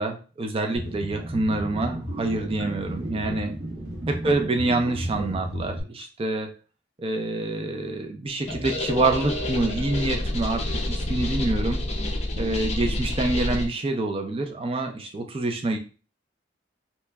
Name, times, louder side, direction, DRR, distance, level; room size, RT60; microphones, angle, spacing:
voice 1, 0.0-3.5 4.1-6.5 7.0-11.8 12.4-15.8, right 2 dB, 30° right, 4 dB, 0.4 m, -26 dB
sound 1, 0.8-5.8, right 1 dB, 70° right, 1.3 m, -33 dB
sound 2, 8.5-13.7, left 1 dB, 35° left, 0.6 m, -28 dB
2.9 x 2.2 x 3.4 m, 0.35 s
head